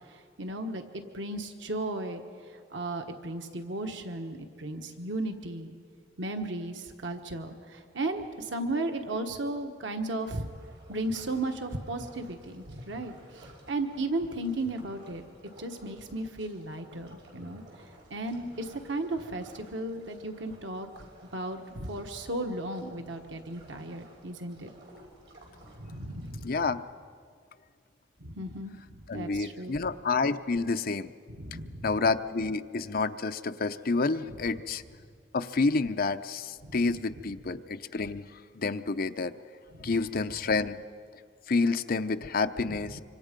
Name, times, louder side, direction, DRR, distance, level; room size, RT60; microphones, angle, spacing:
voice 1, 0.1-2.2 2.7-5.7 6.2-10.5 10.9-15.2 15.6-17.6 18.1-20.9 21.3-24.7 25.8-26.5 28.2-29.8 31.4-31.9 34.3-34.4 36.6-36.8 39.7-40.0 42.7-43.0, right 2 dB, 90° right, 5 dB, 1.4 m, -35 dB
sound 1, 10.4-26.3, right 1 dB, 70° right, 5.4 m, -54 dB
voice 2, 26.4-26.8 29.1-31.1 31.8-34.8 35.3-38.2 38.6-39.3 39.8-40.8 41.5-43.0, left 3 dB, 55° left, 9 dB, 0.7 m, -29 dB
25.5 x 25.0 x 5.3 m, 2.2 s
head